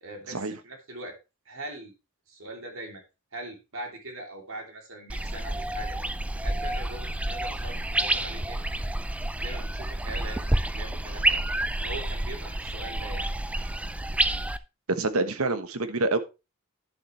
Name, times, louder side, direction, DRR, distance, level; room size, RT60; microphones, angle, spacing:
voice 1, 0.0-1.1 1.4-1.9 2.3-3.0 3.3-6.0 6.4-8.6 9.4-11.4 11.8-13.3, right 1 dB, 65° right, 3.0 m, -41 dB
sound 1, 5.1-14.6, right 1 dB, 5° right, 0.4 m, -29 dB
voice 2, 14.9-16.2, right 2 dB, 85° right, 1.2 m, -26 dB
11.0 x 7.3 x 3.3 m
head